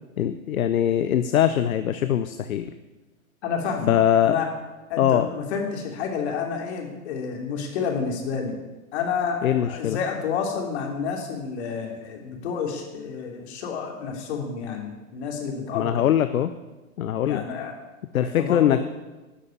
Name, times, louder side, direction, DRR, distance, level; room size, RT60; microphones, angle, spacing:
voice 1, 0.2-2.7 3.9-4.4 5.0-5.3 9.4-10.0 15.7-16.5 17.0-17.4 18.1-18.8, left 10 dB, 70° left, 11 dB, 0.8 m, -22 dB
voice 2, 3.4-3.9 4.2-4.5 4.9-8.6 8.9-16.1 17.2-17.7 18.2-18.8, left 6 dB, 45° left, 1 dB, 3.2 m, -29 dB
12.5 x 6.5 x 8.8 m, 1.1 s
hypercardioid pair, 135°, 44 cm